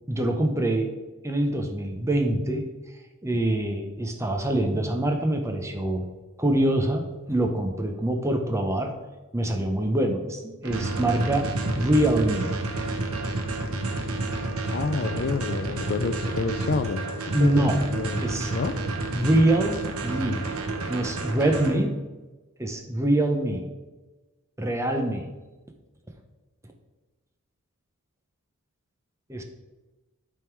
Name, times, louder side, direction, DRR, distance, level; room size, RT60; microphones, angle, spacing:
voice 1, 0.1-0.9 1.2-2.7 3.2-6.1 6.4-8.9 9.3-11.5 11.7-12.5 17.3-17.8 18.2-18.5 19.1-20.5 20.9-22.0 22.6-23.7 24.6-25.3 29.3-29.4, right 1 dB, 15° right, 3 dB, 0.7 m, -24 dB
sound 1, 10.6-21.7, right 2 dB, 65° right, 1.0 m, -30 dB
voice 2, 14.7-17.0 17.3-17.7 17.9-18.2 18.5-18.7, left 4 dB, 45° left, 10 dB, 0.4 m, -28 dB
9.0 x 3.6 x 4.6 m, 1.2 s
head